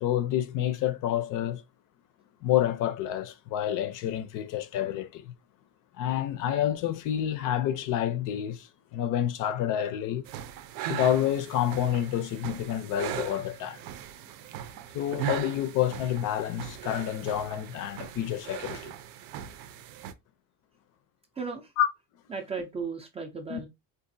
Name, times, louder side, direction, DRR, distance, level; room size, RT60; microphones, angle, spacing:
voice 1, 0.0-1.6 2.4-5.3 6.0-10.2 10.9-13.8 14.9-18.9 21.8-21.9 23.5-23.6, left 11 dB, 60° left, 0.5 m, -28 dB
sound 1, 10.3-20.1, right 11 dB, 85° right, 0.6 m, -39 dB
voice 2, 21.3-21.7 22.3-23.7, right 5 dB, 20° right, 0.4 m, -35 dB
3.9 x 2.4 x 2.6 m
cardioid pair, 170°, 35 cm